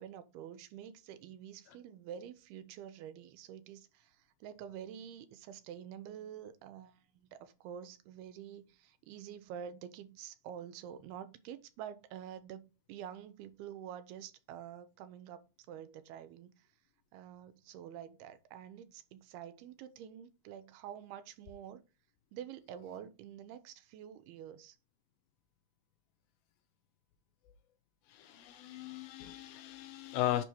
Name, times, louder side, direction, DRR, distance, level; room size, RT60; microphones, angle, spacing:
voice 1, 0.0-16.7 17.1-21.8 22.3-24.8, right 9 dB, 80° right, 2.6 m, -48 dB
voice 2, 28.1-30.4, left 13 dB, 75° left, 2.4 m, -36 dB
7.1 x 5.6 x 3.1 m
omnidirectional pair, 4.6 m